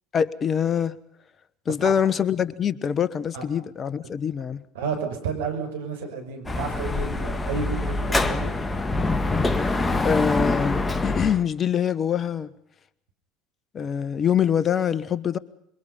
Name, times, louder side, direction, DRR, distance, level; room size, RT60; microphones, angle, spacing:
voice 1, 0.1-1.0 1.7-4.6 10.0-12.5 13.7-15.4, left 8 dB, 35° left, 1.4 m, -24 dB
voice 2, 4.7-8.5, right 5 dB, 75° right, 5.9 m, -31 dB
Dog / Motorcycle, 6.5-11.4, left 2 dB, 15° left, 1.7 m, -25 dB
27.0 x 23.0 x 5.6 m
hypercardioid pair, 75°, 0 cm